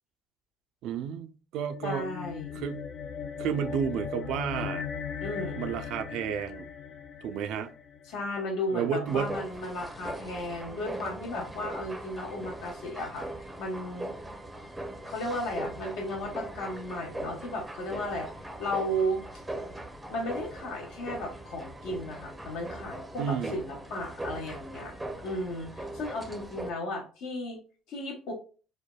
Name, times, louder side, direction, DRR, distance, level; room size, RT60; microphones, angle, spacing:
voice 1, 0.8-2.1 2.6-2.8 3.4-4.8 5.6-6.7 7.2-7.7 8.7-9.4 23.2-23.6, right 8 dB, 70° right, 0.3 m, -31 dB
sound 1, 1.7-8.3, left 7 dB, 50° left, 0.4 m, -38 dB
voice 2, 1.8-2.6 5.2-5.6 8.1-13.3 13.6-14.1 15.0-18.3 18.6-19.2 20.1-24.9 25.2-27.6 27.9-28.3, left 1 dB, 75° left, 0.9 m, -34 dB
sound 2, 9.1-26.7, right 1 dB, 10° right, 0.5 m, -40 dB
3.3 x 2.1 x 2.2 m
supercardioid pair, 75°, 0 cm